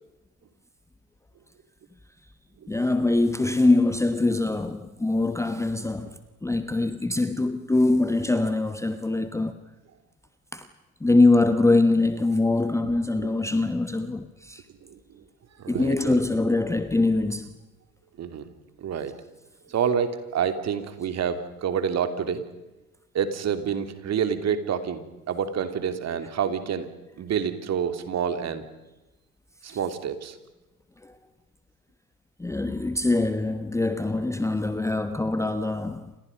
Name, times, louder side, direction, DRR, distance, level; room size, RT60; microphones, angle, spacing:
voice 1, 2.7-9.6 10.5-10.7 11.0-14.6 15.7-17.5 29.7-29.8 31.0-31.1 32.4-36.1, left 2 dB, 5° left, 1.1 m, -23 dB
voice 2, 14.8-15.2 15.6-16.2 18.2-18.5 18.8-19.2 19.7-22.5 23.1-26.9 27.2-28.6 29.6-30.4, right 7 dB, 35° right, 2.9 m, -28 dB
29.5 x 27.0 x 5.3 m
hypercardioid pair, 85°, 46 cm